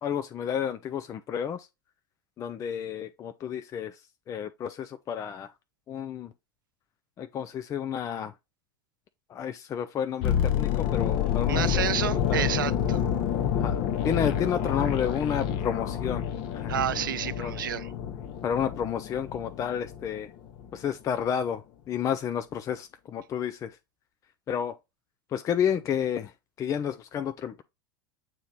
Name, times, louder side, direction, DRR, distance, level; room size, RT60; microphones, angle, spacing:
voice 1, 0.0-1.7 2.4-5.5 5.9-6.3 7.2-8.3 9.3-12.4 13.6-16.3 16.5-16.8 17.4-17.5 18.4-20.3 20.7-23.8 24.5-24.8 25.3-26.3 26.6-27.6, left 8 dB, 30° left, 0.5 m, -31 dB
sound 1, 10.2-20.2 20.5-20.7, left 9 dB, 45° left, 0.9 m, -28 dB
voice 2, 11.5-13.0 16.7-17.9, right 10 dB, 75° right, 0.4 m, -30 dB
7.5 x 3.1 x 4.0 m
figure-of-eight pair, 80°, 11 cm